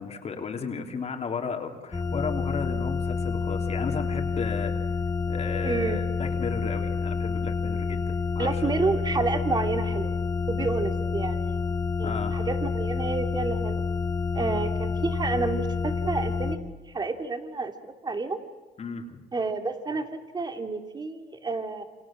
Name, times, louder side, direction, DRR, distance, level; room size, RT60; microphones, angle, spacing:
voice 1, 0.0-5.0 5.3-8.7 10.6-10.7 12.0-12.4 14.4-14.6 18.8-19.2, left 5 dB, 40° left, 3 dB, 3.3 m, -34 dB
sound 1, 1.9-16.6, left 5 dB, 20° left, 2.3 m, -28 dB
voice 2, 5.6-6.0 8.4-10.2 10.5-11.6 12.0-13.8 14.3-16.6 16.8-18.4 19.3-21.8, right 3 dB, 25° right, 7 dB, 2.9 m, -30 dB
29.0 x 27.0 x 7.6 m, 1.3 s
cardioid pair, 110°, 17 cm